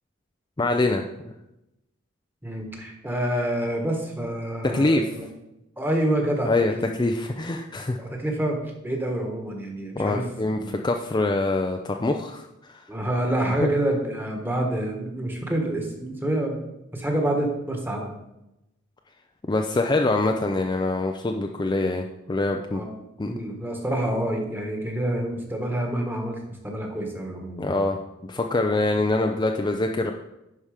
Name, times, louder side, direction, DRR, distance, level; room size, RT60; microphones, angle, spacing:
voice 1, 0.6-1.0 4.7-5.0 6.5-8.0 10.0-12.4 12.7-12.8 13.6-13.7 19.5-22.8 23.2-23.4 27.6-28.0 28.3-30.1, left 2 dB, 20° left, 3 dB, 0.5 m, -24 dB
voice 2, 2.4-5.2 5.8-6.9 8.0-10.3 10.5-10.8 12.9-16.6 16.9-18.1 22.7-22.9 23.2-27.8, right 1 dB, 10° right, 2 dB, 1.4 m, -27 dB
11.0 x 4.8 x 5.0 m, 0.91 s
head